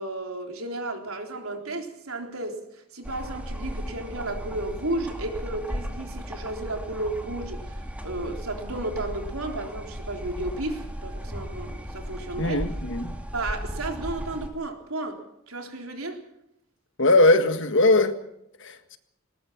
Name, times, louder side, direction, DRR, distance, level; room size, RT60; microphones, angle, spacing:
voice 1, 0.0-12.6 13.3-16.2, right 2 dB, 80° right, 3.8 m, -33 dB
sound 1, 3.0-14.5, equal, 5° right, 2.2 m, -36 dB
voice 2, 12.4-13.1 17.0-18.1 18.6-19.0, left 2 dB, 60° left, 1.7 m, -20 dB
20.0 x 19.5 x 7.2 m
head